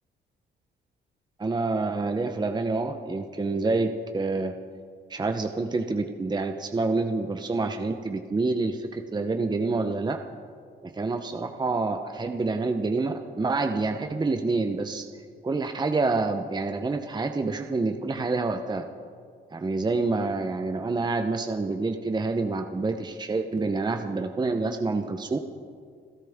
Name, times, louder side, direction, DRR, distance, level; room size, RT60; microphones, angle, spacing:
voice 1, 1.4-4.5 5.1-10.2 10.8-15.1 15.4-18.8 19.5-25.4, right 3 dB, 20° right, 6 dB, 0.8 m, -27 dB
29.0 x 13.0 x 3.6 m, 2.1 s
cardioid pair, 90°, 20 cm